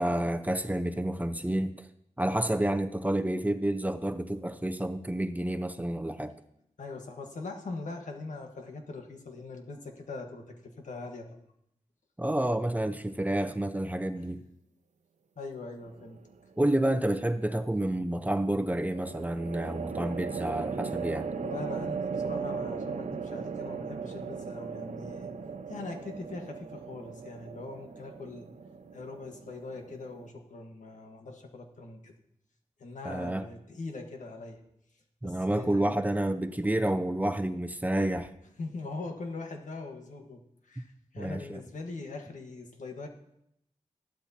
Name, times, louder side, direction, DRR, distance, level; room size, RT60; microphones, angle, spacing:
voice 1, 0.0-1.9 2.2-6.4 12.2-14.4 16.6-21.3 33.0-33.5 35.2-38.3 41.2-41.6, right 1 dB, 10° right, 0.7 m, -29 dB
voice 2, 6.8-11.3 15.4-16.2 19.7-19.8 21.3-25.3 25.7-28.5 28.9-32.1 32.8-34.6 35.2-36.0 38.6-43.1, left 3 dB, 85° left, 1.5 m, -41 dB
sound 1, 15.8-16.4 18.9-30.3, right 5 dB, 75° right, 0.7 m, -37 dB
14.5 x 12.0 x 2.9 m
cardioid pair, 60°, 13 cm